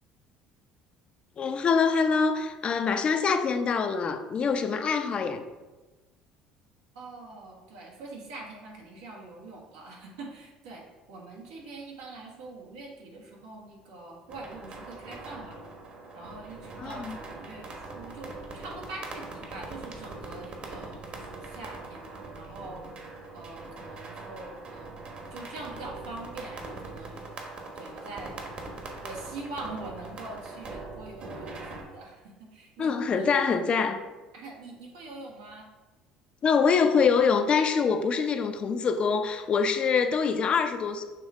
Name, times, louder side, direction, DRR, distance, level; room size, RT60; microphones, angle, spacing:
voice 1, 1.4-5.4 16.8-17.2 32.8-34.0 36.4-41.0, left 5 dB, 45° left, 7 dB, 0.6 m, -25 dB
voice 2, 6.9-15.6 16.1-22.9 23.3-25.0 25.3-27.2 27.7-28.4 29.0-33.6 34.3-35.7, right 2 dB, 85° right, -2 dB, 1.5 m, -43 dB
sound 1, 14.3-31.8, right 3 dB, 50° right, 1.3 m, -42 dB
6.7 x 3.1 x 4.7 m, 1.2 s
supercardioid pair, 80°, 3 cm